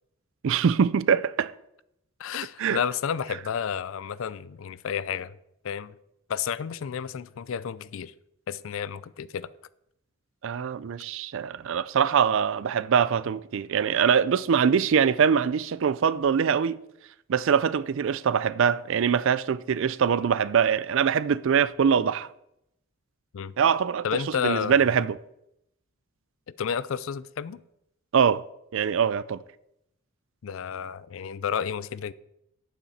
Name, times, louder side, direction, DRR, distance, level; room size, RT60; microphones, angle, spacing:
voice 1, 0.4-1.5 2.6-2.8 10.4-16.8 17.3-22.3 23.6-25.2 28.1-28.4 28.7-29.4, right 7 dB, 60° right, 0.4 m, -23 dB
voice 2, 2.2-5.4 5.6-5.9 6.3-8.1 8.5-9.5 23.3-23.5 24.0-24.9 26.6-27.6 30.4-32.1, left 7 dB, 65° left, 0.4 m, -31 dB
9.9 x 8.8 x 4.2 m
head